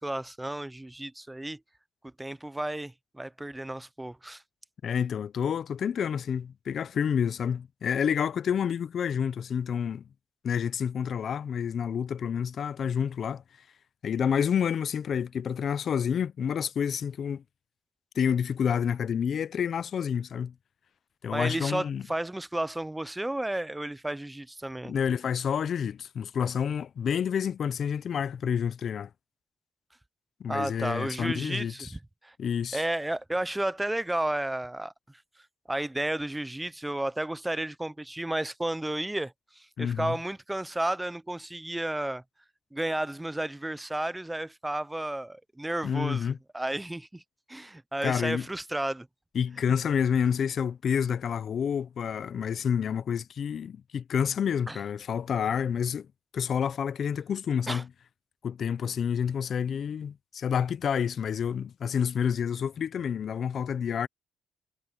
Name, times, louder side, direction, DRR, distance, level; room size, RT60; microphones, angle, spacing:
voice 1, 0.0-1.6 2.2-4.4 21.3-24.9 30.5-32.3 32.7-34.9 35.7-42.2 42.7-47.2 47.5-49.1 54.7-54.8 57.7-57.8, right 1 dB, 10° right, 0.6 m, -32 dB
voice 2, 4.8-10.0 10.4-13.4 14.0-17.4 18.2-20.5 21.2-22.0 24.9-29.1 30.4-31.9 32.4-32.8 39.8-40.2 45.8-46.4 48.0-48.5 49.3-56.1 56.3-57.9 58.4-64.1, left 7 dB, 55° left, 0.6 m, -29 dB
cardioid pair, 90°, 0 cm